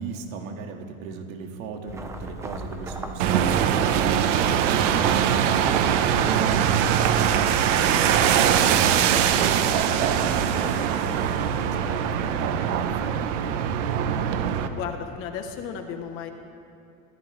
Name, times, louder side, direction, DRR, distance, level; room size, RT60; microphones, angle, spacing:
voice 1, 0.0-12.9 13.2-13.6, right 4 dB, 80° right, 2 dB, 2.2 m, -38 dB
sound 1, 1.9-12.7, right 2 dB, 5° right, 0.5 m, -39 dB
sound 2, 3.2-14.7, right 9 dB, 65° right, 1.2 m, -22 dB
voice 2, 14.7-16.3, left 7 dB, 35° left, 5 dB, 1.1 m, -34 dB
27.0 x 15.5 x 3.4 m, 2.6 s
supercardioid pair, 180°, 40 cm